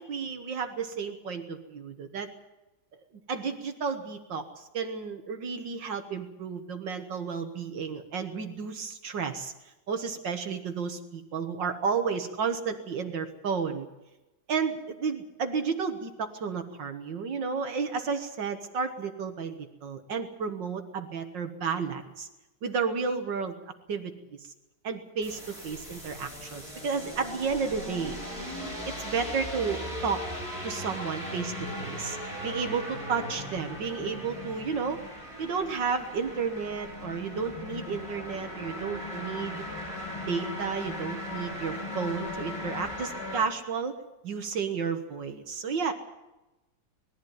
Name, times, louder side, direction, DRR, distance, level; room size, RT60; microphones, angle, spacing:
voice 1, 0.0-2.3 3.3-9.5 9.9-13.9 14.5-22.3 22.6-23.6 23.9-24.1 24.4-24.5 24.8-28.2 28.9-30.2 30.6-31.5 31.8-32.2 32.4-35.0 35.4-39.6 40.3-43.9 44.2-45.9, right 5 dB, 70° right, 7 dB, 2.0 m, -32 dB
sound 1, 25.2-43.4, left 1 dB, 15° left, 7.7 m, -38 dB
21.0 x 14.5 x 9.3 m, 1.0 s
omnidirectional pair, 2.1 m